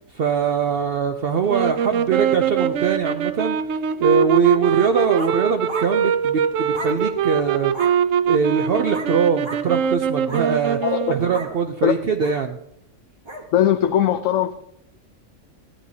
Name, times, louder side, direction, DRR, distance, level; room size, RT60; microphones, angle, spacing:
voice 1, 0.1-3.6 4.0-7.7 8.3-10.8 11.1-12.6, right 6 dB, 60° right, 5 dB, 0.7 m, -22 dB
sound 1, 1.5-11.5, right 8 dB, 85° right, 1.0 m, -22 dB
sound 2, 4.8-5.4 5.7-5.9 6.7-7.0 7.7-8.0 8.9-9.1 9.4-9.6 10.2-10.5 11.3-11.5 12.2-12.4 13.3-13.5, right 2 dB, 25° right, 1.1 m, -34 dB
voice 2, 10.8-11.1 11.8-11.9 13.5-14.5, left 11 dB, 80° left, 7 dB, 0.9 m, -19 dB
15.0 x 10.0 x 2.8 m, 0.76 s
omnidirectional pair, 1.3 m